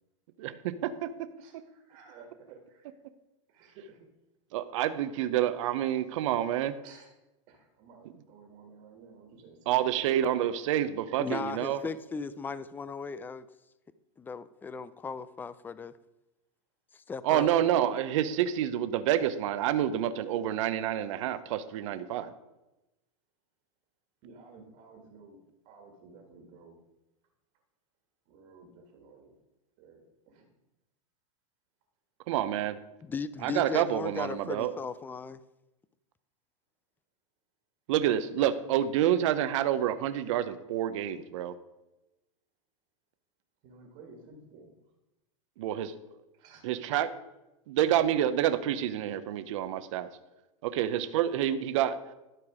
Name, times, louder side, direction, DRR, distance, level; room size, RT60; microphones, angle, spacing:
voice 1, 0.4-1.3 4.5-6.7 9.7-11.9 17.2-22.3 32.3-32.8 33.4-34.7 37.9-41.5 45.6-46.2 46.6-47.1 47.7-50.1 50.6-52.1, right 11 dB, 65° right, 12 dB, 0.7 m, -28 dB
voice 2, 1.4-2.9 3.5-4.1 6.8-7.1 7.5-9.7 24.2-25.4 25.7-26.8 28.3-29.3 29.8-30.5 43.6-44.8 46.3-46.7 50.7-50.9, right 4 dB, 50° right, 1 dB, 1.7 m, -54 dB
voice 3, 11.2-13.5 14.2-15.9 16.9-17.5 33.1-35.4, left 5 dB, 10° left, 15 dB, 0.3 m, -37 dB
12.0 x 4.6 x 4.9 m, 0.98 s
hypercardioid pair, 120°, 17 cm